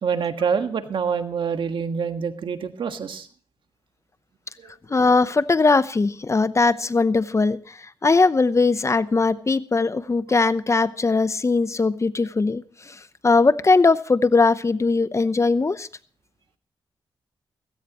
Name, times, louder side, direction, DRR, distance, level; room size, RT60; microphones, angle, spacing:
voice 1, 0.0-3.3 4.6-4.7, right 6 dB, 65° right, 8 dB, 1.6 m, -26 dB
voice 2, 4.9-7.8 8.0-13.0 13.2-15.9, left 3 dB, 35° left, 15 dB, 0.8 m, -20 dB
17.0 x 16.5 x 3.0 m, 0.43 s
cardioid pair, 60°, 9 cm